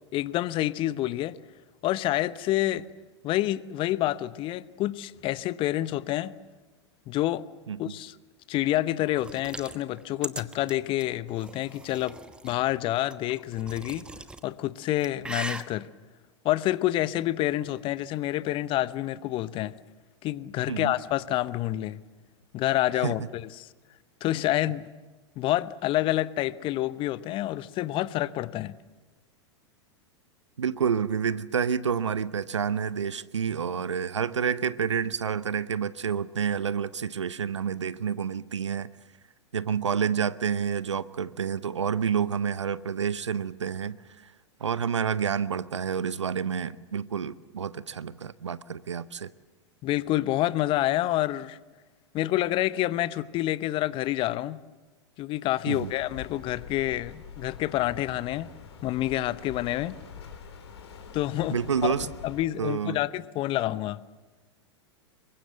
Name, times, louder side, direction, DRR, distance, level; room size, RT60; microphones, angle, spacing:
voice 1, 0.1-1.4 1.8-2.9 3.2-6.3 7.1-7.4 7.8-8.1 8.5-12.2 12.4-14.0 14.4-15.9 16.4-19.7 20.2-22.0 22.5-23.7 24.2-24.8 25.4-28.7 49.8-51.6 52.1-54.6 55.2-58.5 58.8-59.9 61.1-61.9 62.2-64.0, left 15 dB, 35° left, 17 dB, 0.9 m, -28 dB
sound 1, 9.1-12.6 13.1-14.4 14.8-15.6, right 2 dB, 5° right, 1.2 m, -39 dB
voice 2, 30.6-38.9 39.5-44.0 44.6-49.3 55.7-55.9 61.5-62.1 62.6-63.0, right 7 dB, 80° right, 17 dB, 0.9 m, -29 dB
sound 2, 55.7-62.5, left 7 dB, 65° left, 4.0 m, -45 dB
26.5 x 23.0 x 7.9 m, 1.2 s
figure-of-eight pair, 95°, 15 cm